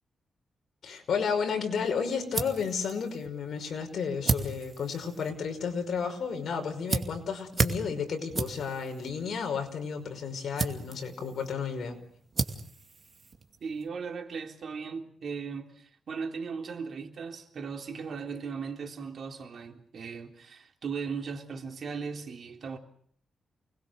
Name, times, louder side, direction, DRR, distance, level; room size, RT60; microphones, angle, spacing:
voice 1, 0.8-12.0, left 6 dB, 70° left, 5.4 m, -32 dB
sound 1, 1.8-13.9, right 4 dB, 40° right, 2.5 m, -36 dB
voice 2, 13.6-22.8, right 5 dB, 60° right, 3.5 m, -37 dB
29.5 x 21.0 x 6.7 m
cardioid pair, 115°, 0 cm